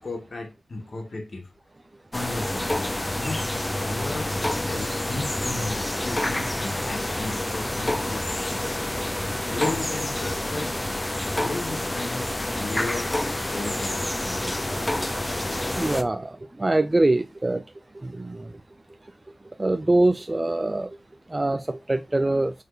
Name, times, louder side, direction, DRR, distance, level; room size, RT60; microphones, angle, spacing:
voice 1, 0.0-1.5 2.1-8.8 9.5-10.7 11.3-14.1, left 2 dB, 45° left, 2.1 m, -35 dB
sound 1, 2.1-16.0, left 1 dB, 15° left, 0.8 m, -28 dB
voice 2, 15.8-16.3 16.6-17.6 18.2-18.4 19.6-20.9 21.3-22.5, right 2 dB, 20° right, 0.5 m, -23 dB
6.4 x 4.5 x 5.0 m
wide cardioid pair, 105°, 0 cm